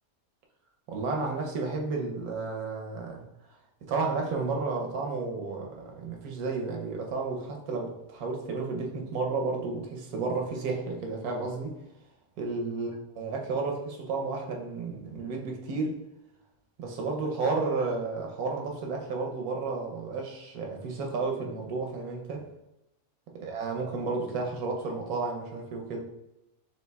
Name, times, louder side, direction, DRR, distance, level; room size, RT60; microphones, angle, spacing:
voice 1, 0.9-3.2 3.9-11.7 12.4-12.9 13.2-15.9 16.8-22.4 23.3-26.0, right 3 dB, 85° right, 1.2 m, -32 dB
6.4 x 2.6 x 2.2 m
omnidirectional pair, 1.5 m